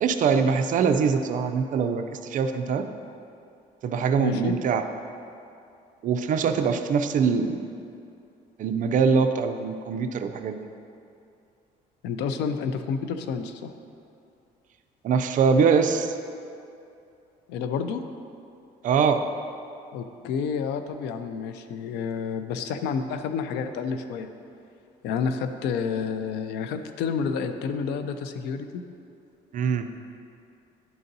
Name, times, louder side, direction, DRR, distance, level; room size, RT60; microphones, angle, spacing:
voice 1, 0.0-2.9 3.8-4.8 6.0-7.6 8.6-10.7 15.0-16.1 18.8-19.2 29.5-29.9, right 6 dB, 50° right, 7 dB, 0.4 m, -23 dB
voice 2, 4.2-4.5 12.0-13.7 17.5-18.0 19.9-24.3 25.0-28.8, left 6 dB, 90° left, 9 dB, 0.4 m, -29 dB
10.5 x 3.9 x 2.7 m, 2.6 s
cardioid pair, 110°, 17 cm